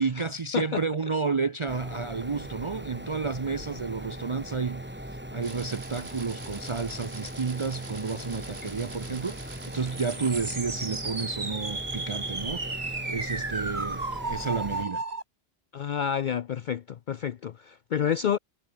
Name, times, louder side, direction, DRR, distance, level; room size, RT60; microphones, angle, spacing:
voice 1, 0.0-15.0, right 4 dB, 35° right, 0.7 m, -31 dB
sound 1, 1.7-14.9, equal, 10° right, 3.4 m, -40 dB
sound 2, 5.4-15.2, right 3 dB, 75° right, 3.2 m, -36 dB
sound 3, 7.5-13.4, left 1 dB, 90° left, 7.9 m, -54 dB
voice 2, 15.7-18.4, left 8 dB, 55° left, 0.6 m, -29 dB
omnidirectional pair, 1.1 m